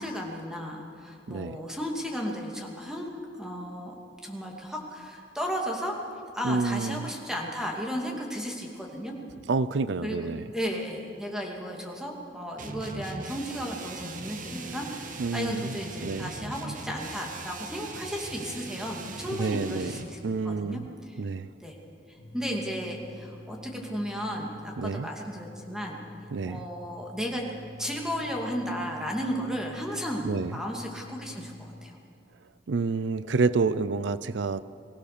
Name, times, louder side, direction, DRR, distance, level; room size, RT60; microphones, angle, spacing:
voice 1, 0.0-3.9 4.2-6.0 6.3-9.1 10.0-10.3 10.5-20.2 20.4-20.8 21.6-21.8 22.1-26.0 26.4-27.4 27.8-30.2 30.5-32.0, equal, 5° right, 0 dB, 2.5 m, -34 dB
voice 2, 6.4-7.1 9.5-10.5 15.2-15.7 16.0-16.3 19.3-20.0 20.2-20.9 21.2-21.5 24.8-25.1 26.3-26.7 30.2-30.6 32.7-34.6, right 4 dB, 80° right, 15 dB, 0.5 m, -28 dB
sound 1, 12.6-20.2, right 3 dB, 45° right, 1.4 m, -40 dB
sound 2, 22.2-31.9, left 2 dB, 45° left, 3.7 m, -47 dB
23.5 x 16.0 x 6.8 m, 2.5 s
head